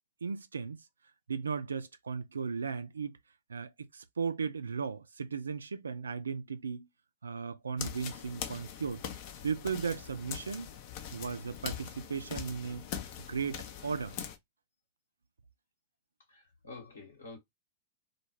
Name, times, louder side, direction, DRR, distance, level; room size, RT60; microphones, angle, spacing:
voice 1, 0.2-0.8 1.3-3.2 3.5-6.9 7.2-9.0 9.4-10.7 11.1-12.9 13.3-14.2, right 5 dB, 75° right, 0.3 m, -36 dB
sound 1, 7.8-14.4, left 9 dB, 45° left, 0.5 m, -42 dB
voice 2, 16.3-17.4, left 3 dB, 75° left, 1.1 m, -48 dB
2.2 x 2.2 x 3.0 m
figure-of-eight pair, 100°, 0 cm